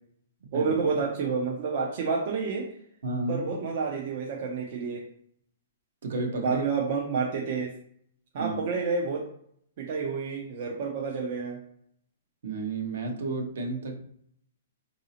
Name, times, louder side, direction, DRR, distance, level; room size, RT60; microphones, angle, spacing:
voice 1, 0.5-2.8 3.3-5.0 6.4-7.7 8.3-9.3 9.8-11.6, right 5 dB, 50° right, -1 dB, 0.5 m, -29 dB
voice 2, 3.0-3.5 6.0-6.6 8.4-8.6 12.4-13.9, right 3 dB, 70° right, 2 dB, 0.9 m, -31 dB
3.9 x 2.6 x 2.8 m, 0.66 s
hypercardioid pair, 155°, 0 cm